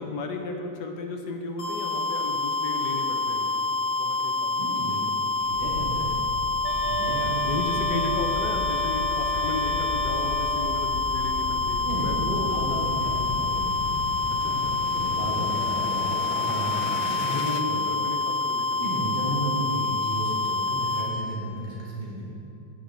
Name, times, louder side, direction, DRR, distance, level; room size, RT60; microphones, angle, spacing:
voice 1, 0.0-3.6 4.0-4.7 7.4-12.6 14.3-14.8 17.2-18.9, left 3 dB, 65° left, 3 dB, 1.3 m, -34 dB
sound 1, 1.6-21.1, left 3 dB, 45° left, 2.3 m, -27 dB
voice 2, 4.5-5.0 5.4-6.2 6.8-7.9 11.8-13.6 14.3-14.6 14.8-17.3 17.6-17.8 18.8-22.3, right 1 dB, 30° right, -5 dB, 1.9 m, -33 dB
sound 2, 5.4-17.6, left 5 dB, 80° left, 1.3 m, -36 dB
sound 3, 6.6-10.8, right 3 dB, 85° right, 0.5 m, -35 dB
9.5 x 6.7 x 6.1 m, 2.7 s
omnidirectional pair, 2.1 m